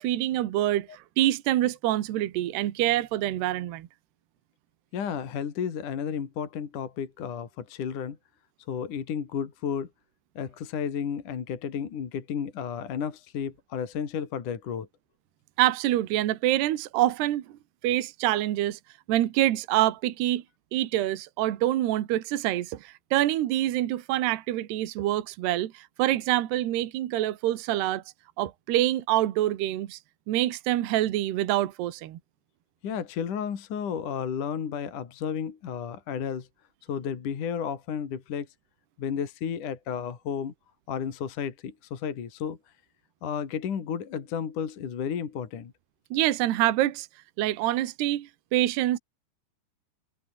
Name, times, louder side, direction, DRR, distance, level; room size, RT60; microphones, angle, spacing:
voice 1, 0.0-3.9 15.6-17.6 17.8-18.8 19.1-20.4 20.7-28.0 28.4-30.0 30.3-32.2 46.1-47.1 47.4-49.0, right 14 dB, 70° right, 3.4 m, -26 dB
voice 2, 4.9-8.2 8.7-9.9 10.4-14.9 32.8-36.5 36.9-38.5 39.0-40.5 40.9-42.6 43.2-45.7, left 7 dB, 50° left, 3.9 m, -32 dB
omnidirectional pair, 5.1 m